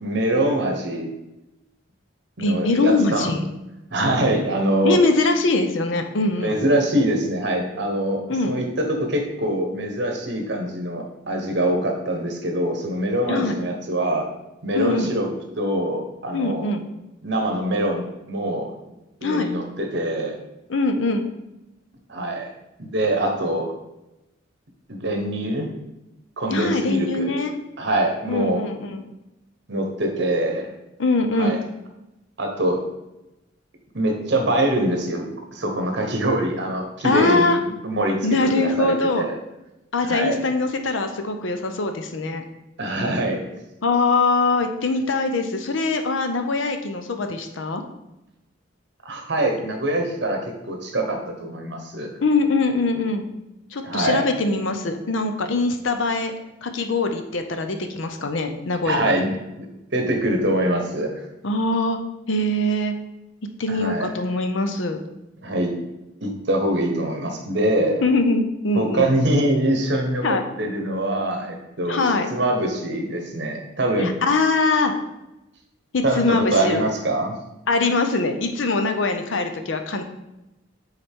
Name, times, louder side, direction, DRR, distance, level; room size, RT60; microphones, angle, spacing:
voice 1, 0.0-1.1 2.4-3.4 3.9-5.0 6.4-14.3 14.6-15.3 15.6-16.6 17.2-18.7 19.2-20.4 22.1-22.5 22.8-23.7 24.9-25.7 26.4-27.3 27.8-28.6 29.7-30.7 31.4-31.6 32.4-32.8 33.9-35.3 35.5-39.3 40.0-40.4 42.8-43.5 49.0-52.1 53.8-54.2 58.8-59.3 59.6-59.7 59.9-61.2 63.7-64.1 65.4-65.7 66.2-68.0 68.8-72.0 72.3-74.1 76.0-77.3, right 1 dB, 60° right, 3 dB, 1.1 m, -24 dB
voice 2, 2.4-3.4 4.8-6.6 8.3-8.6 13.3-13.5 14.7-15.1 16.3-16.9 19.2-19.5 20.7-21.2 26.5-27.5 28.3-29.0 31.0-31.6 37.0-37.6 38.2-39.3 39.9-42.4 43.8-47.8 52.2-53.3 53.7-56.3 56.6-59.1 61.4-62.0 62.3-62.9 63.6-65.0 68.0-69.1 70.2-70.4 71.9-72.3 74.0-74.9 75.9-76.8 77.7-80.0, left 3 dB, 80° left, 6 dB, 0.7 m, -22 dB
6.9 x 4.0 x 3.6 m, 0.95 s
head